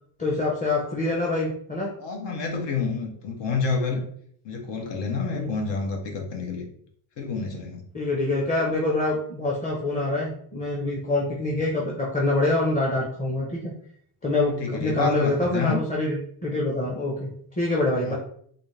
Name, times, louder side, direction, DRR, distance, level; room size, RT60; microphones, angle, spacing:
voice 1, 0.2-1.9 5.3-5.5 7.9-13.7 14.2-17.3 17.6-18.1, left 2 dB, 20° left, -4 dB, 0.8 m, -25 dB
voice 2, 2.0-4.0 4.4-6.7 7.2-7.8 14.5-15.8 18.0-18.1, left 4 dB, 65° left, 1 dB, 1.0 m, -28 dB
4.2 x 2.6 x 3.3 m, 0.63 s
cardioid pair, 120°, 45 cm